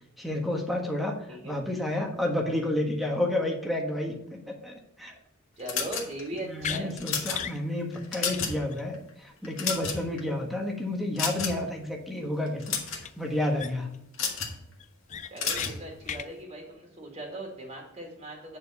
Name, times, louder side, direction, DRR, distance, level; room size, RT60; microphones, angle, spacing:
voice 1, 0.2-1.1 1.4-4.1 4.6-5.1 6.4-14.0, left 1 dB, ahead, 0 dB, 1.4 m, -30 dB
voice 2, 5.6-7.0 15.3-18.6, right 1 dB, 30° right, 0 dB, 2.1 m, -39 dB
sound 1, 5.7-6.4 6.9-7.4 7.9-8.6 8.9-9.1 9.4-10.2 11.2-11.7 12.5-13.0 14.1-14.6 15.4-15.8, left 6 dB, 70° left, 1.9 m, -31 dB
sound 2, 6.6-6.8 7.3-7.6 7.9-8.0 8.3-8.4 8.7-8.8 13.0-13.1 13.6-14.0 14.3-14.4 14.8-15.7 16.0-16.3, left 8 dB, 35° left, 0.4 m, -35 dB
9.3 x 4.5 x 5.6 m, 0.83 s
head